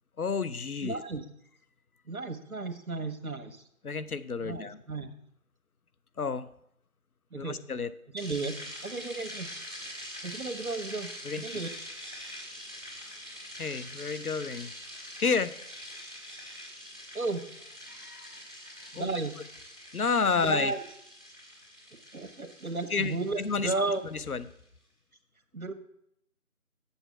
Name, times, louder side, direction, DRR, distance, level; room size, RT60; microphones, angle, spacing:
voice 1, 0.2-1.0 3.8-4.8 6.2-6.5 7.4-7.9 11.2-11.4 13.6-14.7 15.2-15.5 17.9-18.4 18.9-19.2 19.9-20.7 22.9-23.7 24.1-24.5, left 5 dB, 80° left, 13 dB, 0.8 m, -30 dB
voice 2, 0.8-1.2 2.1-3.6 4.4-5.1 7.3-7.6 8.1-8.6 8.8-9.5 10.2-11.1 11.4-11.7 17.1-17.4 18.9-19.3 20.4-20.8 22.1-24.0 25.5-25.7, right 3 dB, 70° right, 7 dB, 1.4 m, -33 dB
sound 1, 8.2-24.4, equal, 5° right, 2.7 m, -44 dB
8.1 x 7.0 x 5.8 m, 0.73 s
figure-of-eight pair, 170°, 43 cm